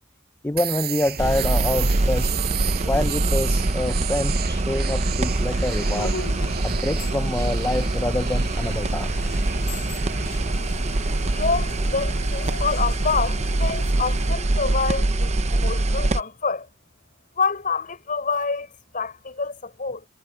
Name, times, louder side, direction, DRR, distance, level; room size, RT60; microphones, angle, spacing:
voice 1, 0.4-2.3 2.8-6.1 6.6-9.2, left 1 dB, 10° left, 0.6 m, -26 dB
sound 1, 0.6-12.2, right 11 dB, 50° right, 7.6 m, -34 dB
sound 2, 1.2-16.2, right 2 dB, 30° right, 0.7 m, -24 dB
sound 3, 5.0-14.3, left 2 dB, 80° left, 3.7 m, -38 dB
voice 2, 11.3-16.7 17.3-20.0, left 4 dB, 40° left, 5.1 m, -27 dB
head